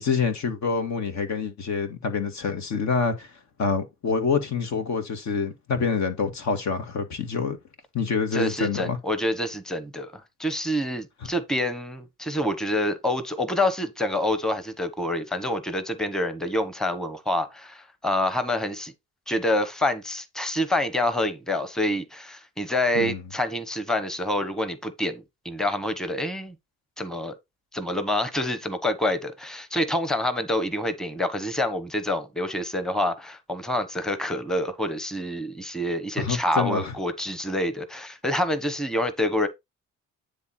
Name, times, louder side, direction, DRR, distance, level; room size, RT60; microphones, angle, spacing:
voice 1, 0.0-3.3 3.6-7.6 7.9-9.0 23.0-23.2 36.2-36.9, left 5 dB, 65° left, 1.8 m, -26 dB
voice 2, 8.3-18.9 19.3-26.5 27.0-27.3 27.7-39.5, left 1 dB, ahead, 1.1 m, -27 dB
9.6 x 3.5 x 4.2 m
cardioid pair, 90°, 30 cm